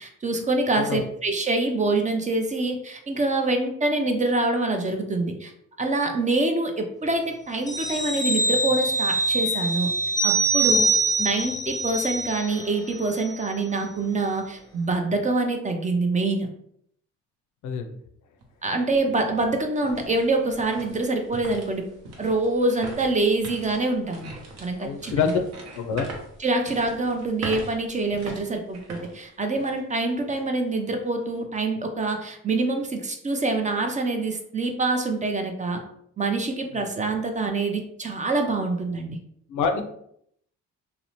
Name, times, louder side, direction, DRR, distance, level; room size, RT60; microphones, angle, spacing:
voice 1, 0.0-5.5 5.8-9.9 10.2-10.9 11.2-16.5 18.6-21.8 22.2-24.3 24.6-25.3 26.4-35.8 36.2-39.2, right 2 dB, 25° right, 5 dB, 0.4 m, -25 dB
sound 1, 7.7-12.8 13.1-13.2, right 2 dB, 15° left, 0.6 m, -24 dB
sound 2, 18.4-18.5 19.0-29.9 30.3-30.4 31.0-31.4, right 2 dB, 60° right, 0.8 m, -41 dB
voice 2, 24.8-25.4 25.7-26.0 36.7-36.9 39.5-39.8, left 6 dB, 75° left, 6 dB, 0.5 m, -26 dB
2.7 x 2.0 x 2.9 m, 0.69 s
cardioid pair, 90°, 30 cm